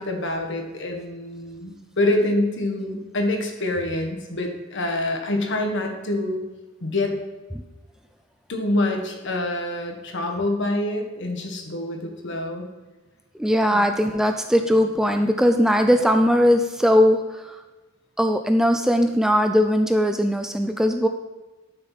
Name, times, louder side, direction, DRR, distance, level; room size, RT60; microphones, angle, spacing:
voice 1, 0.0-6.4 6.8-7.1 8.5-12.7, left 1 dB, 60° left, 3 dB, 1.6 m, -26 dB
voice 2, 13.4-17.6 18.2-21.1, equal, 5° right, 6 dB, 0.4 m, -19 dB
11.5 x 6.6 x 4.1 m, 1.2 s
head